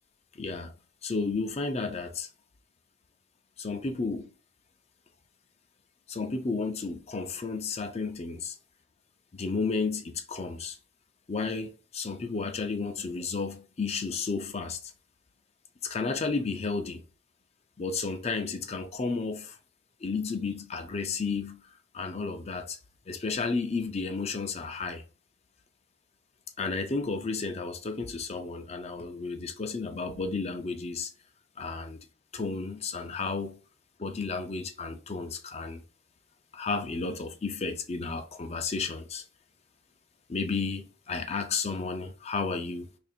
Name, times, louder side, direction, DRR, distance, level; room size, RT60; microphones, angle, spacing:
voice 1, 0.4-0.7 1.0-2.3 3.6-4.3 6.1-8.6 9.3-10.8 11.3-14.9 15.8-17.0 17.8-19.6 20.0-22.8 23.1-25.0 26.6-31.1 31.6-32.0 32.3-33.6 34.0-35.8 36.5-39.2 40.3-42.9, left 4 dB, 35° left, 0.5 m, -32 dB
2.9 x 2.5 x 4.2 m
head